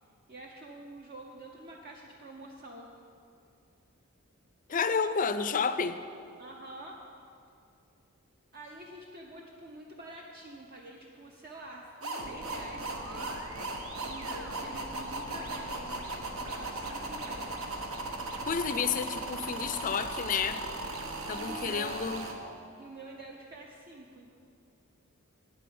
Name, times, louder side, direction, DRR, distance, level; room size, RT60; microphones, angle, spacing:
voice 1, 0.3-2.9 6.4-7.0 8.5-16.0 16.4-17.6 21.3-22.0 22.8-24.3, right 2 dB, 45° right, -1 dB, 0.8 m, -47 dB
voice 2, 4.7-6.0 18.5-20.6 21.3-22.2, left 6 dB, 35° left, 11 dB, 0.4 m, -30 dB
sound 1, 12.0-22.3, right 2 dB, 70° right, 1.2 m, -37 dB
9.5 x 8.4 x 7.0 m, 2.5 s
head